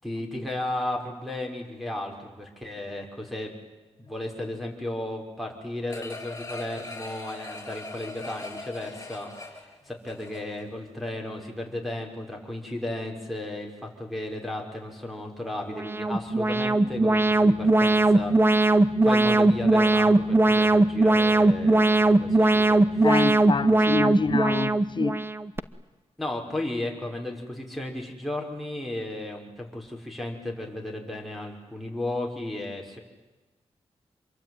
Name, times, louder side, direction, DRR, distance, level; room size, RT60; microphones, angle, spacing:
voice 1, 0.0-3.5 4.0-18.7 19.0-23.1 23.7-24.6 26.2-33.0, left 1 dB, ahead, 5.8 m, -34 dB
sound 1, 5.9-10.7 11.1-11.2, left 2 dB, 25° left, 6.3 m, -40 dB
Alarm, 15.7-25.6, right 2 dB, 20° right, 1.1 m, -20 dB
voice 2, 23.0-25.3, left 4 dB, 45° left, 0.8 m, -27 dB
27.0 x 23.0 x 9.4 m
wide cardioid pair, 95°, 11 cm